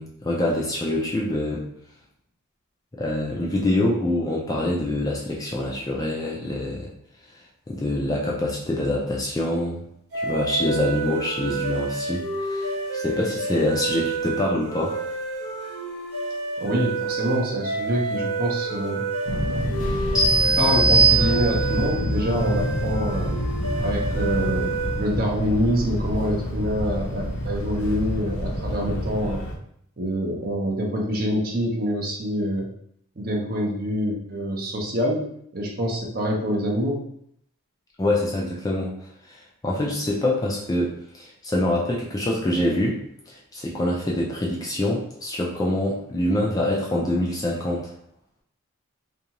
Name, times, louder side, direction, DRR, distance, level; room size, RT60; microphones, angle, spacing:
voice 1, 0.0-1.7 2.9-6.9 7.7-9.8 10.1-15.0 38.0-38.9 39.2-47.9, left 1 dB, 15° left, -3 dB, 0.3 m, -25 dB
sound 1, 10.1-25.2, right 3 dB, 85° right, 1.0 m, -29 dB
voice 2, 16.6-19.1 20.6-23.4 23.8-24.7 25.0-29.4 30.0-32.7 33.2-37.0, equal, 40° right, -1 dB, 0.5 m, -26 dB
Fixed-wing aircraft airplane, 19.3-29.6, equal, 70° left, 0.5 m, -27 dB
sound 2, 20.2-21.9, right 4 dB, 5° right, 0.7 m, -20 dB
2.6 x 2.3 x 2.8 m, 0.69 s
head